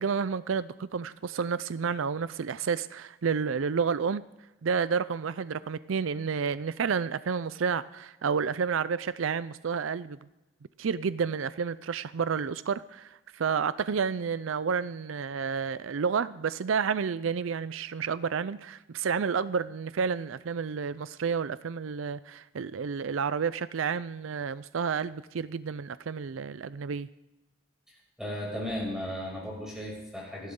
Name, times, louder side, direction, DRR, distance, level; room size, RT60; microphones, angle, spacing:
voice 1, 0.0-4.2 4.6-10.2 10.8-27.1, right 6 dB, 75° right, 16 dB, 0.5 m, -30 dB
voice 2, 27.9-30.5, equal, 5° right, -4 dB, 6.6 m, -36 dB
27.0 x 12.0 x 3.8 m, 0.99 s
head